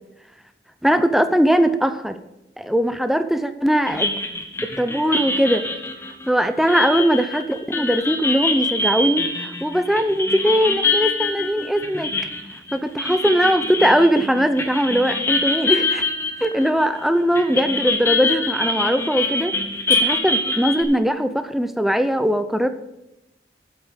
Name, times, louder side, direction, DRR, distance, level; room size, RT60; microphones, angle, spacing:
voice 1, 0.8-2.2 2.6-4.1 4.6-5.7 6.3-12.1 12.7-16.1 16.4-19.5 19.9-22.7, equal, ahead, 10 dB, 0.5 m, -20 dB
sound 1, 3.9-17.0 17.3-20.8, left 3 dB, 15° left, 1.1 m, -25 dB
8.1 x 7.8 x 6.3 m, 0.91 s
head